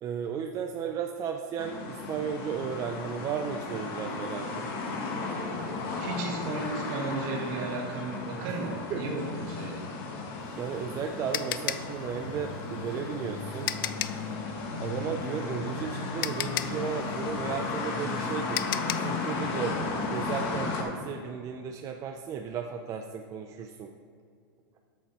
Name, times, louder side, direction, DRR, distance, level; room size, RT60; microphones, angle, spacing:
voice 1, 0.0-4.7 8.9-9.0 10.5-13.7 14.8-18.7 19.0-19.8 20.1-23.9, right 7 dB, 25° right, 4 dB, 0.4 m, -34 dB
sound 1, 1.6-20.8, left 3 dB, 45° left, 1.3 m, -34 dB
voice 2, 6.0-9.8 15.0-15.1, right 3 dB, 50° right, 1 dB, 1.7 m, -34 dB
sound 2, 10.4-14.3 15.7-15.8 16.2-19.2, left 12 dB, 65° left, 0.4 m, -34 dB
7.8 x 6.5 x 4.2 m, 2.3 s
supercardioid pair, 140°, 12 cm